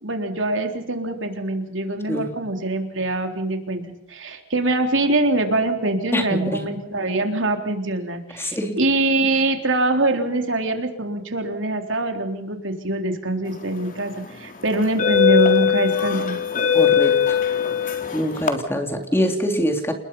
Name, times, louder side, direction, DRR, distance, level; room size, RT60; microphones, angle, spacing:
voice 1, 0.0-16.4, right 2 dB, 70° right, 5 dB, 3.8 m, -23 dB
voice 2, 6.1-6.7 8.3-8.8 16.7-17.4 18.1-19.9, equal, 15° left, 4 dB, 3.3 m, -24 dB
sound 1, 13.7-14.0 14.7-18.5, left 8 dB, 45° left, 3.3 m, -20 dB
29.5 x 20.5 x 5.6 m, 0.83 s
head